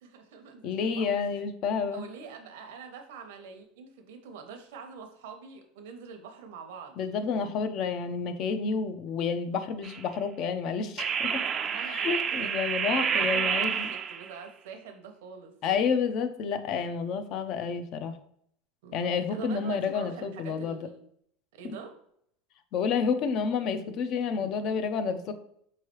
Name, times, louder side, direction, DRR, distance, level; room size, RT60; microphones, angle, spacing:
voice 1, 0.0-1.3 1.9-7.5 11.6-12.5 12.8-15.9 18.8-21.0 21.5-21.9, right 5 dB, 80° right, 5 dB, 0.7 m, -45 dB
voice 2, 0.6-2.0 7.0-11.4 11.7-13.9 15.6-18.2 18.9-20.8 22.7-25.3, left 6 dB, 45° left, 9 dB, 0.4 m, -30 dB
sound 1, 9.8-10.1 11.0-14.3, right 7 dB, 30° right, 0.3 m, -29 dB
4.6 x 3.1 x 3.0 m, 0.68 s
supercardioid pair, 140°, 0 cm